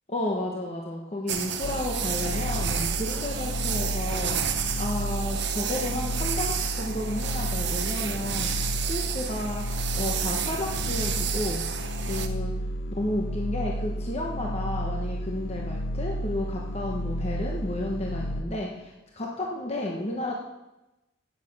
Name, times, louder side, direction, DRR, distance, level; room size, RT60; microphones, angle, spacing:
voice 1, 0.1-9.6 9.9-11.6 12.1-12.5 12.9-20.3, left 1 dB, 30° left, -1 dB, 1.0 m, -32 dB
sound 1, 1.3-12.3, right 8 dB, 60° right, 0.8 m, -31 dB
sound 2, 1.6-18.4, equal, 70° left, 0.7 m, -32 dB
10.5 x 8.8 x 5.4 m, 0.98 s
head